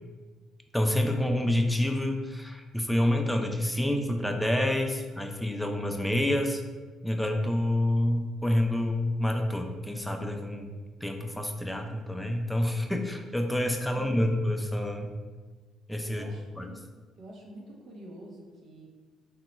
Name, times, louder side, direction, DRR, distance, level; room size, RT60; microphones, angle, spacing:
voice 1, 0.7-6.6 7.0-10.7 11.0-15.1 15.9-16.2 16.6-16.7, left 1 dB, 5° left, 3 dB, 0.4 m, -28 dB
voice 2, 13.9-14.4 16.1-16.8 17.2-18.9, right 1 dB, 65° right, -1 dB, 0.6 m, -46 dB
2.8 x 2.2 x 3.0 m, 1.4 s
supercardioid pair, 70°, 0 cm